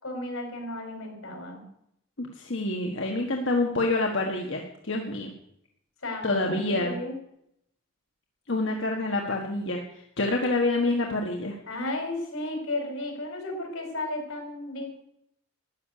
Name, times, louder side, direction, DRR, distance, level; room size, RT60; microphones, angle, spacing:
voice 1, 0.0-1.7 6.0-7.2 11.7-15.0, left 2 dB, 90° left, 2 dB, 5.1 m, -34 dB
voice 2, 2.2-5.3 6.2-7.0 8.5-11.5, left 2 dB, 65° left, 1 dB, 1.6 m, -27 dB
13.5 x 6.7 x 9.8 m, 0.75 s
head